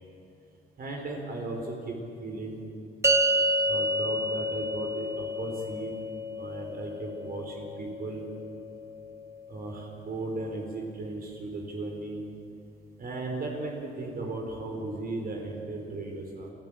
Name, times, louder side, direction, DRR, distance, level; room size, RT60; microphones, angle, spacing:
voice 1, 0.8-2.6 3.7-5.9 6.4-8.3 9.5-12.2 13.0-16.5, right 2 dB, 50° right, 1 dB, 4.2 m, -36 dB
sound 1, 3.0-9.6, equal, 15° right, 1.7 m, -30 dB
28.0 x 14.0 x 8.7 m, 2.7 s
cardioid pair, 90°, 20 cm